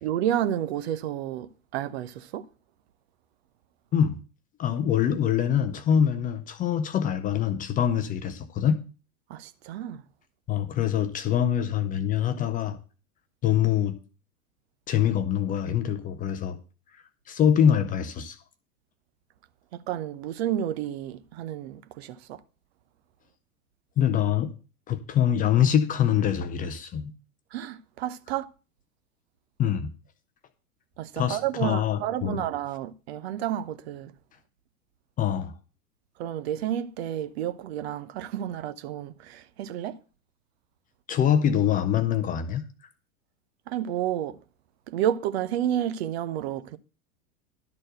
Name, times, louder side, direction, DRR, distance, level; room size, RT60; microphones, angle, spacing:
voice 1, 0.0-2.4 9.3-10.0 19.7-22.4 27.5-28.5 31.0-34.1 36.2-40.0 43.7-44.4 44.9-46.8, right 11 dB, 45° right, 0.8 m, -30 dB
voice 2, 4.6-8.8 10.5-12.8 13.4-14.0 14.9-16.6 17.3-18.4 24.0-24.5 24.9-27.1 29.6-29.9 31.2-32.4 35.2-35.5 41.1-42.6, left 9 dB, 20° left, 0.7 m, -24 dB
12.0 x 4.3 x 7.7 m
figure-of-eight pair, 90°, 45 cm